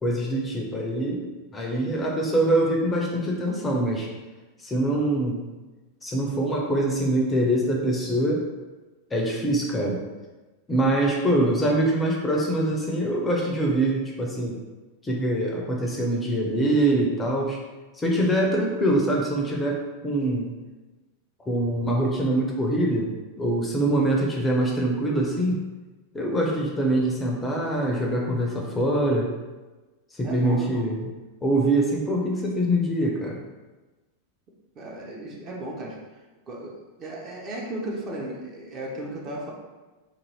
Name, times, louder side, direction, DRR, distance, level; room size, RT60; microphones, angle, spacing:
voice 1, 0.0-4.1 4.6-5.5 6.0-8.4 9.1-10.0 10.7-14.6 15.0-17.6 18.0-20.5 21.5-25.6 26.1-29.3 30.1-31.1 31.4-33.4, right 1 dB, 15° left, -1 dB, 0.5 m, -24 dB
voice 2, 30.2-30.8 34.8-36.0 36.5-39.5, right 1 dB, 30° right, -1 dB, 0.6 m, -35 dB
2.6 x 2.4 x 3.1 m, 1.2 s
figure-of-eight pair, 90°, 0 cm